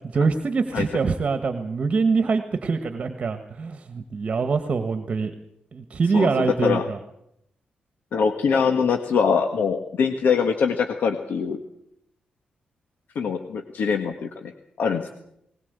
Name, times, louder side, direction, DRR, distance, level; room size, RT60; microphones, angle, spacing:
voice 1, 0.1-5.3 5.7-7.0, right 4 dB, 40° right, 9 dB, 1.5 m, -24 dB
voice 2, 6.1-6.9 8.1-11.6 13.1-14.5 14.8-15.1, left 6 dB, 75° left, 6 dB, 1.5 m, -23 dB
20.5 x 19.5 x 8.1 m, 0.76 s
wide cardioid pair, 145°, 3 cm